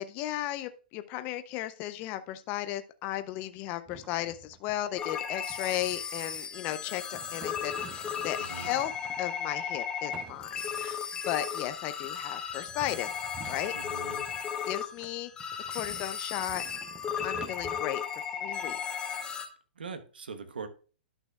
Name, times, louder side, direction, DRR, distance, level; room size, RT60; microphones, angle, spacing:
voice 1, 0.0-8.9 9.2-10.5 10.8-11.0 11.3-13.1 13.5-13.7 14.7-15.3 15.7-16.6 17.2-18.0 18.4-18.8, left 13 dB, 35° left, 11 dB, 0.5 m, -35 dB
sound 1, 3.9-4.8 5.1-5.2 5.5-6.5 7.1-9.6 10.1-10.9 11.6-11.7 12.5-14.5 15.0-17.8, right 6 dB, 15° right, 0.7 m, -50 dB
sound 2, 5.0-19.5, left 7 dB, 15° left, 1.2 m, -35 dB
voice 2, 8.4-8.8 13.7-14.3 19.7-20.7, right 5 dB, 85° right, 9 dB, 1.1 m, -42 dB
11.5 x 6.1 x 2.3 m, 0.37 s
hypercardioid pair, 125°, 5 cm